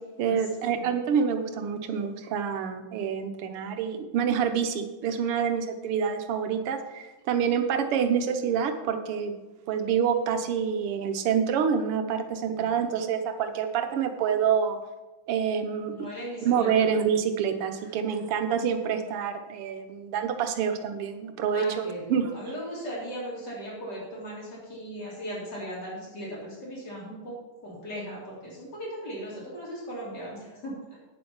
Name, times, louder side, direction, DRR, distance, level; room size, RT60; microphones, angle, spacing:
voice 1, 0.2-9.3 9.7-14.8 15.3-16.1 16.4-22.3, right 7 dB, 85° right, 7 dB, 1.9 m, -27 dB
voice 2, 12.4-12.8 16.0-16.7 17.9-18.3 21.5-30.7, equal, 50° left, -5 dB, 4.2 m, -38 dB
9.4 x 7.8 x 5.6 m, 1.1 s
omnidirectional pair, 2.4 m